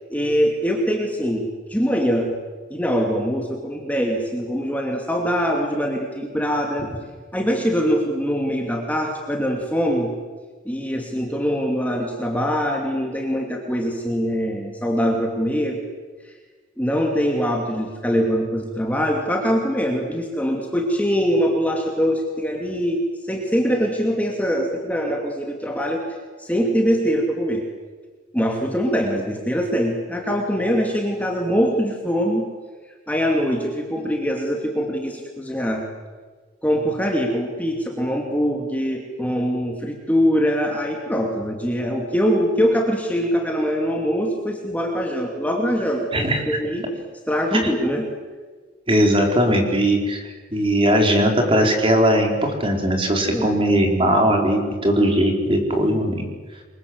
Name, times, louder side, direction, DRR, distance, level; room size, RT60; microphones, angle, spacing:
voice 1, 0.1-2.4 2.7-6.9 7.3-10.1 10.6-15.8 16.2-16.3 16.8-26.1 26.4-27.6 28.3-32.4 33.1-35.8 36.6-46.8 47.3-48.0 53.3-53.5, equal, 5° left, 1 dB, 2.6 m, -23 dB
voice 2, 46.1-46.6 48.9-50.2 50.5-56.3, equal, 25° right, 2 dB, 4.7 m, -19 dB
28.5 x 23.5 x 8.1 m, 1.4 s
head